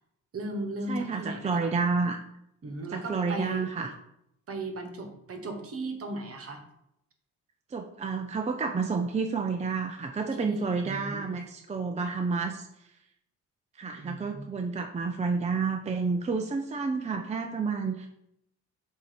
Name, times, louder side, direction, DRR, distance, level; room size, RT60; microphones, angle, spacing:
voice 1, 0.3-1.7 2.6-3.6 4.5-6.6 10.3-11.4 14.0-14.4, right 2 dB, 50° right, 5 dB, 1.3 m, -37 dB
voice 2, 0.9-2.2 2.9-3.9 7.7-12.7 13.8-18.1, right 4 dB, 25° right, 4 dB, 0.5 m, -30 dB
7.3 x 2.8 x 5.1 m, 0.80 s
cardioid pair, 90°, 30 cm